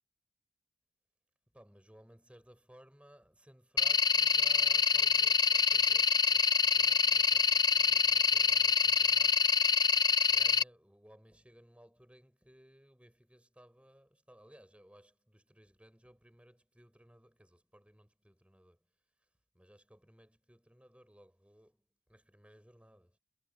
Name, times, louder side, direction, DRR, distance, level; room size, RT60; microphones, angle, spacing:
voice 1, 1.5-10.0 10.3-18.9 19.2-19.3 19.5-23.2, equal, 5° right, 7.8 m, -60 dB
sound 1, 3.8-10.6, left 6 dB, 20° left, 0.4 m, -26 dB
head